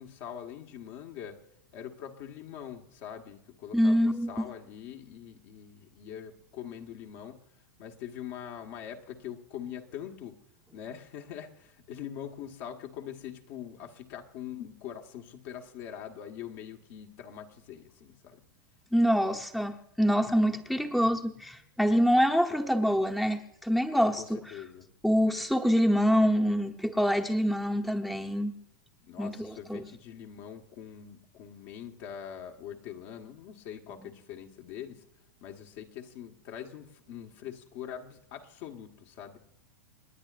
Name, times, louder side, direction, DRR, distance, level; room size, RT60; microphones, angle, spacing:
voice 1, 0.0-1.4 1.7-7.5 7.8-10.4 10.7-18.4 24.1-24.9 29.0-35.0 35.4-39.4, left 9 dB, 55° left, 3 dB, 1.5 m, -43 dB
voice 2, 3.7-4.3 18.9-24.4 25.0-28.5 29.2-29.9 33.9-34.1, equal, ahead, 3 dB, 0.9 m, -26 dB
29.0 x 10.0 x 2.5 m, 0.80 s
hypercardioid pair, 100°, 10 cm